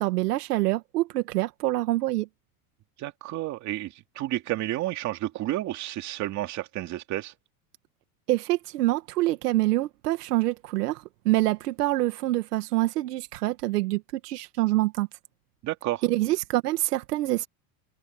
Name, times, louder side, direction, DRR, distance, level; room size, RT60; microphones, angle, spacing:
voice 1, 0.0-2.3 8.3-15.1 16.0-17.5, right 17 dB, 85° right, 2.0 m, -26 dB
voice 2, 3.0-7.3 15.6-16.0, right 15 dB, 35° right, 2.6 m, -31 dB
supercardioid pair, 145°, 46 cm